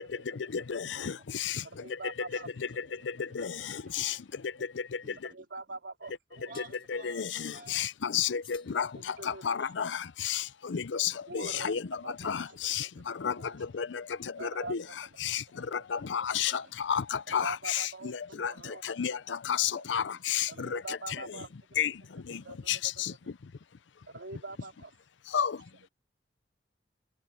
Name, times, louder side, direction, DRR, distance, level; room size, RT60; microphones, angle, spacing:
voice 1, 0.0-0.7 0.9-1.0 1.6-2.5 3.6-4.2 5.2-6.8 8.9-9.4 11.3-11.8 12.0-13.2 13.5-13.6 14.4-15.0 15.3-15.7 16.2-16.5 17.3-19.8 20.5-21.5 22.4-23.3 24.1-24.9, right 3 dB, 80° right, 4.0 m, -45 dB
voice 2, 0.5-1.6 3.3-3.5 3.9-4.1 6.9-8.9 9.3-11.8 12.2-12.9 13.2-13.3 13.8-14.0 14.4-14.8 15.2-15.4 15.7-18.5 18.8-21.0 21.8-21.9 22.7-23.1 25.3-25.5, left 8 dB, 90° left, 0.6 m, -31 dB
voice 3, 2.3-3.5 4.0-4.2 5.0-5.2 6.5-7.9 9.4-9.7 10.7-10.8 14.7-14.8 16.5-16.7 19.1-19.2 19.7-19.8 22.3-22.5, right 3 dB, 45° right, 2.5 m, -54 dB
sound 1, 6.5-6.9 8.4-9.5, left 8 dB, 30° left, 3.4 m, -55 dB
head